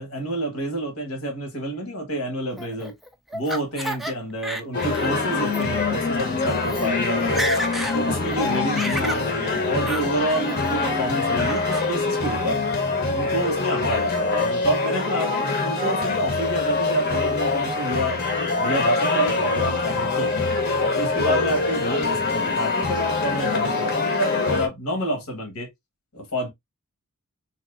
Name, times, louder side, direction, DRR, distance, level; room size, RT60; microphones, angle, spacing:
voice 1, 0.0-2.9 3.3-7.4 7.9-12.6 13.1-18.2 18.6-20.4 21.0-25.7 26.1-26.5, right 1 dB, 80° left, 1.3 m, -28 dB
Laughter, 2.6-4.1 4.4-5.1 5.5-5.6 6.3-6.4 6.6-6.9 7.2-8.0 8.3-9.3 9.9-10.1 10.5-10.9 11.4-11.9, right 1 dB, ahead, 0.3 m, -31 dB
sound 1, 4.7-24.7, left 3 dB, 45° left, 0.8 m, -24 dB
3.6 x 2.8 x 2.3 m
head